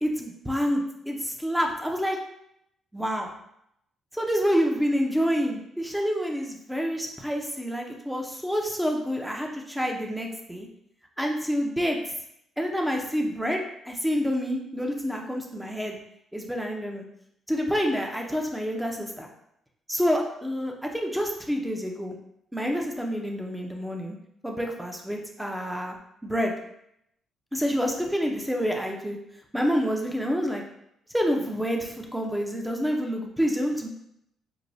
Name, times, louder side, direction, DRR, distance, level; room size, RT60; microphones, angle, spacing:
voice 1, 0.0-2.2 2.9-3.3 4.1-10.7 11.2-12.0 12.6-13.6 13.8-16.0 16.3-17.1 17.5-19.3 19.9-22.2 22.5-24.2 24.4-26.0 26.2-26.5 27.5-29.2 29.5-30.6 31.1-33.9, equal, 5° right, 1 dB, 0.6 m, -28 dB
4.6 x 2.2 x 2.6 m, 0.77 s
cardioid pair, 90°, 0 cm